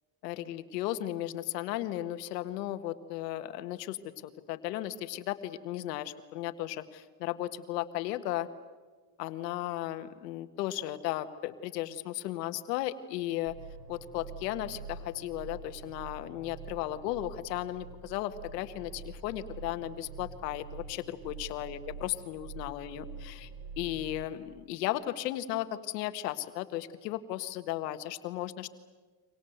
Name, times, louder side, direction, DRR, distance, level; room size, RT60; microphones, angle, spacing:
voice 1, 0.2-8.5 9.2-13.6 13.9-23.5 23.8-28.7, left 14 dB, 90° left, 10 dB, 1.7 m, -35 dB
sound 1, 13.5-24.2, right 4 dB, 50° right, 3.9 m, -46 dB
29.5 x 25.5 x 8.0 m, 1.4 s
supercardioid pair, 95°, 47 cm